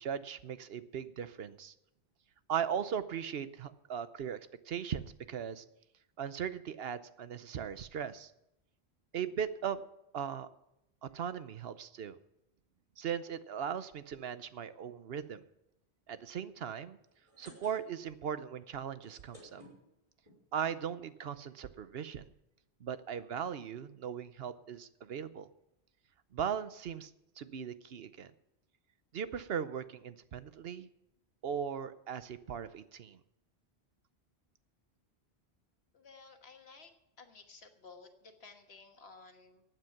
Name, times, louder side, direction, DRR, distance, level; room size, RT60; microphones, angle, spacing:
voice 1, 0.0-1.7 2.5-4.4 4.7-5.6 6.2-8.3 9.1-9.8 10.1-10.5 11.0-12.2 13.0-15.4 16.1-17.0 17.4-19.6 20.5-22.3 22.8-25.5 26.3-27.1 27.4-28.3 29.1-30.9 31.4-33.2, right 8 dB, 70° right, 13 dB, 0.9 m, -38 dB
sound 1, 17.1-18.2 18.5-18.6 18.9-20.4 21.1-21.2 21.4-21.5 21.7-21.9, equal, 30° right, 5.9 m, -56 dB
voice 2, 35.9-36.9 37.2-39.6, left 4 dB, 75° left, 5 dB, 1.7 m, -55 dB
15.5 x 9.2 x 5.9 m, 0.83 s
omnidirectional pair, 1.1 m